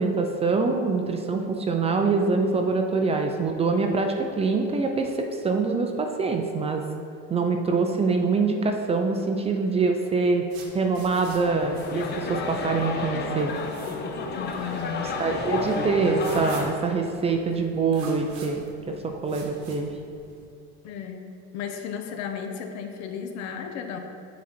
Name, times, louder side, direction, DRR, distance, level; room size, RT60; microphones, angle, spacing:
voice 1, 0.0-6.8 7.3-10.5 10.7-13.5 15.2-19.9, right 4 dB, 20° right, 4 dB, 0.4 m, -24 dB
sound 1, 10.5-20.4, right 3 dB, 65° right, 1.1 m, -45 dB
sound 2, 11.5-16.7, left 3 dB, 35° left, 0.6 m, -31 dB
voice 2, 14.3-15.2 20.8-24.0, left 7 dB, 65° left, 5 dB, 0.8 m, -34 dB
7.5 x 4.0 x 4.3 m, 2.4 s
cardioid pair, 135°, 30 cm